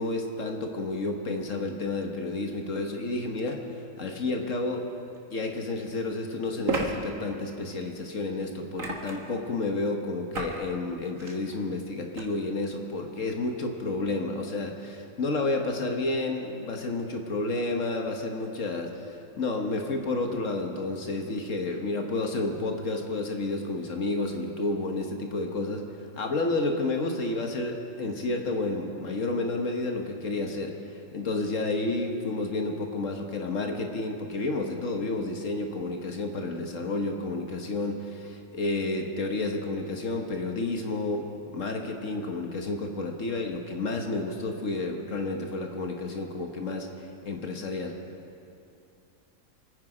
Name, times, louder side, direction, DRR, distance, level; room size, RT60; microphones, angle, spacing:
voice 1, 0.0-3.6 4.0-4.9 5.3-25.8 26.1-48.0, left 2 dB, 65° left, 3 dB, 1.6 m, -31 dB
sound 1, 5.2-5.3 6.6-6.9 8.8-9.3 10.3-10.6 11.0-11.4 12.1-12.2, right 3 dB, 70° right, 2.0 m, -31 dB
25.5 x 9.8 x 5.0 m, 2.7 s
omnidirectional pair, 1.5 m